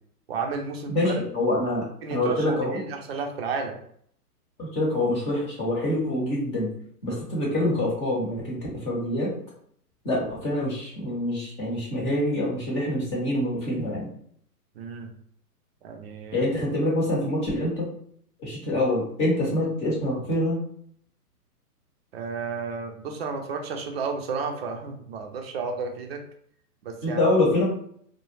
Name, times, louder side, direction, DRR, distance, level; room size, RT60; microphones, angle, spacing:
voice 1, 0.3-1.2 2.0-3.7 14.7-15.1 15.8-16.5 22.1-26.2 26.8-27.2, right 4 dB, 40° right, 3 dB, 0.5 m, -32 dB
voice 2, 0.9-1.8 2.1-2.8 4.6-6.7 7.0-8.6 8.8-9.3 10.0-14.1 16.3-17.9 18.4-20.6 27.0-27.6, left 1 dB, 15° left, -5 dB, 0.6 m, -25 dB
2.3 x 2.0 x 3.1 m, 0.64 s
hypercardioid pair, 135°, 47 cm